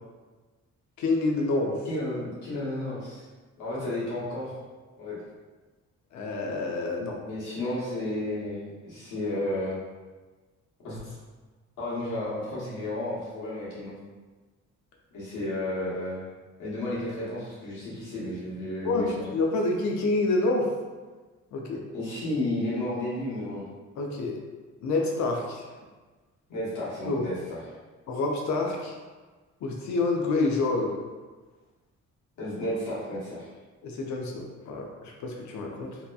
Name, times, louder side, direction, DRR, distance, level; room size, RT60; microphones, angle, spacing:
voice 1, 1.0-1.8 6.1-7.2 18.8-20.7 21.5-21.8 24.0-24.4 24.8-25.6 27.0-27.3 28.1-29.0 29.6-31.0 33.8-36.0, left 2 dB, 70° left, 1 dB, 0.6 m, -27 dB
voice 2, 1.8-3.3 3.6-4.5 5.0-5.2 7.2-9.8 10.8-11.1 11.8-14.0 15.1-16.2 16.6-19.3 21.9-23.6 26.5-27.6 32.4-33.5, left 1 dB, 85° left, -8 dB, 1.2 m, -32 dB
2.9 x 2.2 x 2.3 m, 1.3 s
cardioid pair, 90°, 30 cm